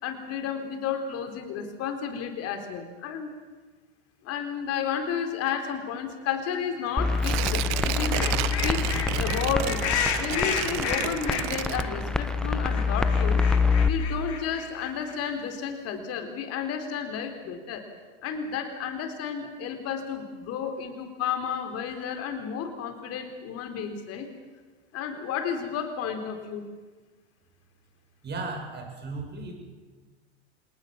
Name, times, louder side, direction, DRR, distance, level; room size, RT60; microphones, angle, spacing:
voice 1, 0.0-3.3 4.2-8.3 8.6-9.9 10.2-13.4 13.9-17.8 18.2-24.3 24.9-26.7, left 7 dB, 45° left, 6 dB, 4.5 m, -32 dB
sound 1, 6.9-7.2 7.6-11.9 12.2-12.3 12.4-15.2, left 9 dB, 70° left, 3.7 m, -32 dB
sound 2, 7.0-13.9, left 4 dB, ahead, 1.1 m, -26 dB
Tearing, 7.2-12.3 12.7-12.8, right 15 dB, 50° right, 1.3 m, -32 dB
voice 2, 28.2-29.5, right 3 dB, 30° right, 3 dB, 7.2 m, -35 dB
26.5 x 19.5 x 7.4 m, 1.3 s
hypercardioid pair, 95°, 34 cm